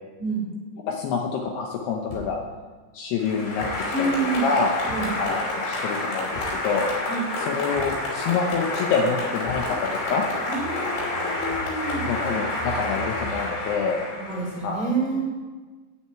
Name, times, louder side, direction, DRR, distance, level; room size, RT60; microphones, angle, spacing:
voice 1, 0.9-2.4 2.9-3.7 4.0-4.1 4.4-4.8 5.2-6.3 6.6-6.9 7.4-10.2 10.9-11.4 12.0-14.0 14.6-14.9, left 5 dB, 75° left, 1 dB, 2.8 m, -27 dB
sound 1, 2.1-2.5 3.6-3.9 4.9-5.3 6.3-6.7 7.7-8.2 9.5-9.8 11.5-11.8, left 3 dB, 45° left, 3.9 m, -40 dB
Applause, 3.2-14.7, left 2 dB, 90° left, 5.5 m, -29 dB
voice 2, 3.9-4.5 4.9-5.1 7.1-7.2 10.5-12.0 14.2-15.3, right 3 dB, 10° right, -5 dB, 3.5 m, -28 dB
sound 2, 5.2-5.3 5.7-5.8 6.3-6.4 7.3-13.4, right 4 dB, 80° right, 3.2 m, -42 dB
8.8 x 7.9 x 8.9 m, 1.4 s
omnidirectional pair, 5.2 m